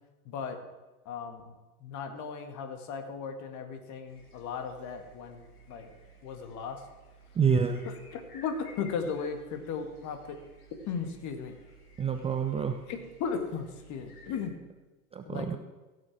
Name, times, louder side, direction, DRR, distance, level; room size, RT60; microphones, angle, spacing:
voice 1, 0.3-0.6 1.1-5.9 6.2-6.9 7.9-10.4 10.9-11.6 12.9-14.5 15.3-15.6, left 6 dB, 40° left, 7 dB, 2.0 m, -36 dB
sound 1, 4.1-14.5, right 1 dB, 80° left, 2.6 m, -55 dB
voice 2, 7.4-7.9 12.0-12.8 15.1-15.6, right 6 dB, 15° right, 7 dB, 0.5 m, -27 dB
16.0 x 6.7 x 6.1 m, 1.2 s
hypercardioid pair, 95°, 44 cm